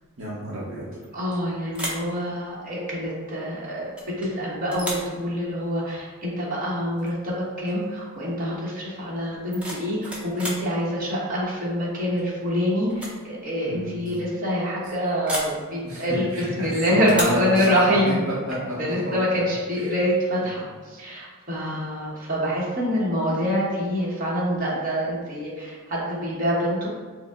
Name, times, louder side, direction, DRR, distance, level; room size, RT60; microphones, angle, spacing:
voice 1, 0.2-0.9 13.6-14.0 15.8-19.4 19.7-20.0 20.4-20.6, equal, 60° right, -7 dB, 0.8 m, -30 dB
sound 1, 1.0-1.4 1.7-2.1 4.0-4.3 4.7-5.1 7.0-7.2 7.5-7.8 9.3-10.7 12.2-12.5 12.9-13.2 13.5-13.6 15.3-15.6 17.1-17.5, equal, 5° right, 0.5 m, -33 dB
voice 2, 1.1-3.9 4.2-16.3 16.6-18.2 18.8-26.9, equal, 40° right, -6 dB, 1.0 m, -26 dB
4.9 x 2.0 x 3.5 m, 1.5 s
head